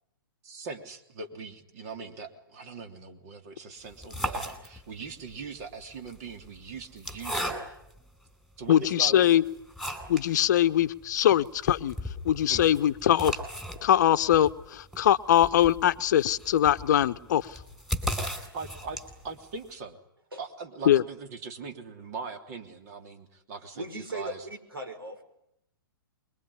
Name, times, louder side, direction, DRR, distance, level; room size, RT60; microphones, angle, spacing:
voice 1, 0.4-7.6 8.6-9.4 12.5-12.6 18.5-20.0 20.4-24.4, right 4 dB, 45° right, 6 dB, 3.2 m, -41 dB
sound 1, 3.8-5.1 5.9-8.0 8.6-8.7 9.2-10.3 10.6-10.7 11.0-11.1 11.4-19.3, equal, 5° right, 4.1 m, -36 dB
voice 2, 8.7-9.4 10.1-12.0 12.2-13.4 13.8-17.6 20.9-21.0, left 11 dB, 50° left, 12 dB, 1.0 m, -22 dB
voice 3, 23.7-25.2, right 1 dB, 80° right, 7 dB, 5.5 m, -38 dB
25.0 x 22.5 x 10.0 m, 0.79 s
figure-of-eight pair, 115°, 12 cm